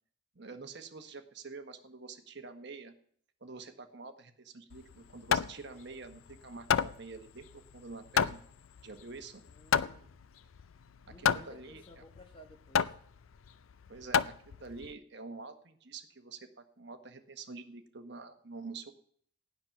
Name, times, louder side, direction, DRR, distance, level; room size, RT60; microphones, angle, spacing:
voice 1, 0.3-2.9 3.4-8.4 8.8-9.4 11.2-12.0 13.9-19.0, right 4 dB, 55° right, 8 dB, 1.1 m, -47 dB
Hammer, 4.7-14.9, left 7 dB, 85° left, 0.5 m, -32 dB
voice 2, 9.4-10.2 11.1-12.9, left 1 dB, 25° left, 4 dB, 1.3 m, -56 dB
15.5 x 9.6 x 5.8 m, 0.64 s
head